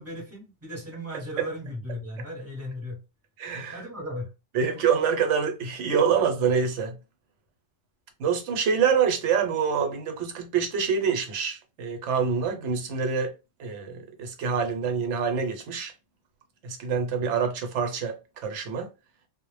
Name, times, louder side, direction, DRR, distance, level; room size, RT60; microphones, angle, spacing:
voice 1, 0.0-3.0 3.7-4.3, left 1 dB, 15° right, 0.7 m, -36 dB
voice 2, 3.4-3.8 4.5-7.0 8.2-13.3 13.6-15.9 16.6-18.9, right 6 dB, 75° right, 0.9 m, -26 dB
2.0 x 2.0 x 3.1 m
omnidirectional pair, 1.3 m